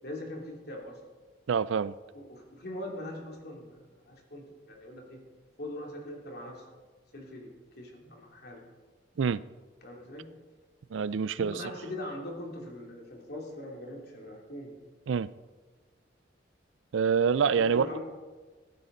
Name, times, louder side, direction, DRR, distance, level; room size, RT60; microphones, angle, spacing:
voice 1, 0.0-1.0 2.1-3.8 4.1-5.2 5.6-6.7 7.1-7.5 7.8-8.6 9.8-10.3 11.4-14.7 17.4-18.0, left 1 dB, 55° left, 2.8 m, -41 dB
voice 2, 1.5-1.9 9.2-9.4 10.9-11.5 15.1-15.3 16.9-17.9, right 6 dB, 85° right, 0.4 m, -26 dB
15.5 x 12.5 x 3.9 m
head